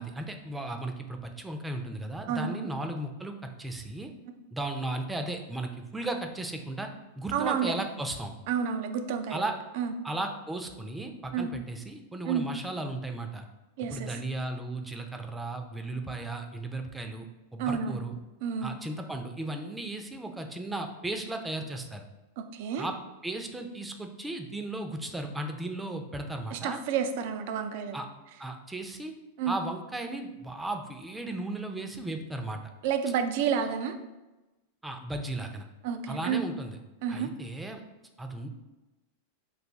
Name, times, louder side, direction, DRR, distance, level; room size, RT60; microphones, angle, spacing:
voice 1, 0.0-4.1 4.5-6.9 7.2-8.3 9.3-9.5 10.0-13.5 13.9-17.3 17.5-18.1 18.6-22.0 22.8-22.9 23.2-26.8 27.9-28.1 28.4-29.1 29.5-32.6 34.8-35.6 36.1-36.8 37.1-37.8 38.2-38.5, right 2 dB, 10° right, 5 dB, 0.5 m, -35 dB
voice 2, 2.3-2.7 7.3-7.7 8.5-9.4 9.8-9.9 11.3-11.5 12.3-12.5 13.8-14.1 17.6-18.0 18.4-18.8 22.4-22.9 26.5-28.0 29.4-29.6 32.8-33.9 35.8-36.5 37.0-37.3, right 7 dB, 60° right, 8 dB, 0.4 m, -30 dB
4.0 x 2.7 x 3.5 m, 1.1 s
hypercardioid pair, 100°, 0 cm